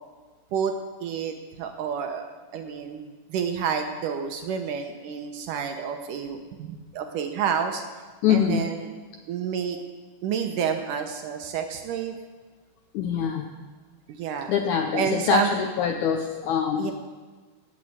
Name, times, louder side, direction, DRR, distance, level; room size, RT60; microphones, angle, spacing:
voice 1, 0.5-2.2 2.5-7.8 8.3-8.9 9.3-9.8 10.2-12.2 14.1-14.5 14.9-15.5 16.8-16.9, right 7 dB, 70° right, 5 dB, 2.1 m, -29 dB
voice 2, 8.2-8.6 12.9-13.5 14.5-16.9, left 8 dB, 85° left, 4 dB, 1.7 m, -24 dB
15.5 x 6.5 x 8.8 m, 1.4 s
omnidirectional pair, 4.3 m